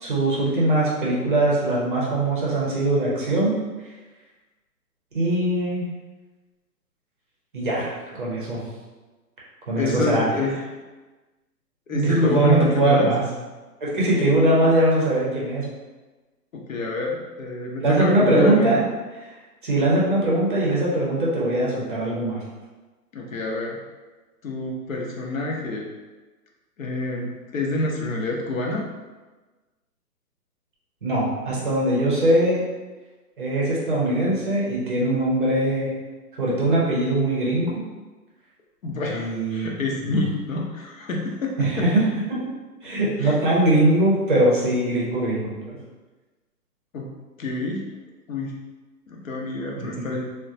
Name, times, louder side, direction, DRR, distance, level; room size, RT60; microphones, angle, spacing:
voice 1, 0.0-3.6 5.1-5.9 7.5-8.6 9.7-10.3 11.9-13.2 13.8-15.7 17.8-18.8 19.6-22.4 31.0-32.6 33.4-35.9 36.4-37.8 39.1-39.7 40.0-40.1 41.6-42.0 42.3-42.4 42.8-45.8 49.8-50.1, right 1 dB, 35° right, -5 dB, 0.6 m, -21 dB
voice 2, 9.7-10.5 11.9-13.1 16.5-18.9 23.1-23.8 24.4-25.9 26.8-28.8 38.8-42.0 43.2-43.4 46.9-47.1 47.4-47.9 48.3-48.6 49.1-50.3, left 2 dB, 55° left, -1 dB, 0.6 m, -27 dB
3.6 x 2.1 x 2.6 m, 1.2 s
hypercardioid pair, 160°, 48 cm